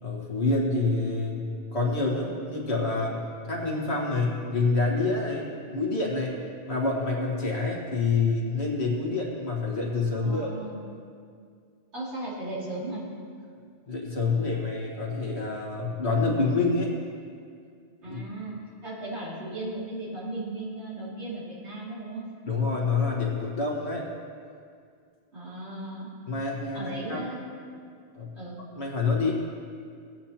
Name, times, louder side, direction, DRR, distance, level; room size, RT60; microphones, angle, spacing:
voice 1, 0.0-5.5 5.7-6.4 6.7-10.5 13.9-16.9 18.0-18.2 22.5-24.1 26.3-27.2 28.1-28.3 28.8-29.4, left 3 dB, 75° left, -2 dB, 1.9 m, -27 dB
voice 2, 10.2-10.8 11.9-13.0 18.0-22.2 25.3-26.1 26.7-27.5 28.4-28.6, right 2 dB, 90° right, -8 dB, 3.1 m, -36 dB
16.5 x 9.0 x 2.9 m, 2.2 s
omnidirectional pair, 1.1 m